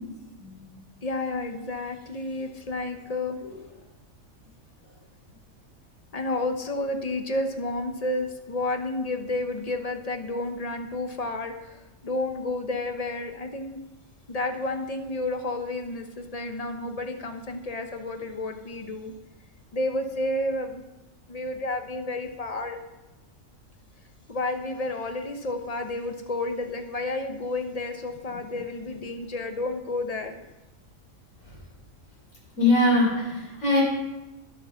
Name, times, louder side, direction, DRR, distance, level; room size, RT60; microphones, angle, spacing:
voice 1, 1.0-3.4 6.1-13.8 14.3-19.1 19.7-20.8 21.3-22.8 24.3-30.4, left 2 dB, 30° left, 6 dB, 0.9 m, -31 dB
voice 2, 32.6-33.8, left 2 dB, 75° left, -4 dB, 4.8 m, -21 dB
11.0 x 8.1 x 5.7 m, 1.0 s
omnidirectional pair, 1.4 m